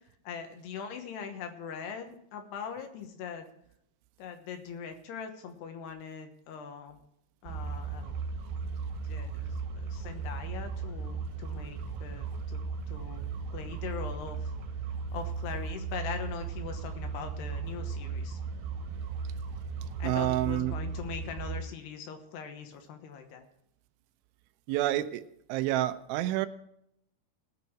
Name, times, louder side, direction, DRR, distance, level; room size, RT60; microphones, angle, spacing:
voice 1, 0.2-3.5 4.2-7.0 7.4-8.1 9.0-12.6 12.9-13.3 13.5-14.5 15.1-18.4 20.0-23.5, left 6 dB, 70° left, 6 dB, 3.0 m, -41 dB
sound 1, 7.4-21.6, right 5 dB, 65° right, 3.4 m, -36 dB
voice 2, 20.0-20.7 24.7-25.2 25.5-26.5, right 14 dB, 90° right, 12 dB, 3.1 m, -28 dB
19.0 x 6.9 x 4.6 m, 0.75 s
omnidirectional pair, 5.3 m